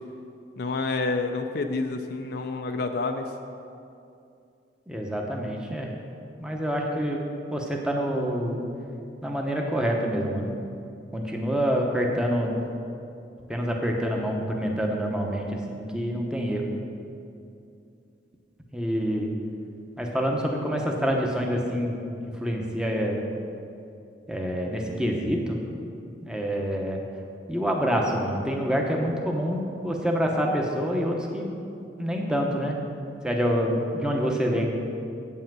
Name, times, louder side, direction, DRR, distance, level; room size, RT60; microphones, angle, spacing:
voice 1, 0.6-3.3, left 3 dB, 60° left, 5 dB, 0.5 m, -28 dB
voice 2, 4.9-5.9 6.4-7.2 7.5-8.6 9.2-10.5 11.1-12.6 13.5-16.7 18.7-19.3 20.0-23.3 24.3-25.6 26.2-27.0 27.5-31.5 32.0-32.8 33.2-34.7, equal, 5° right, 0 dB, 0.9 m, -27 dB
8.4 x 5.6 x 7.5 m, 2.6 s
head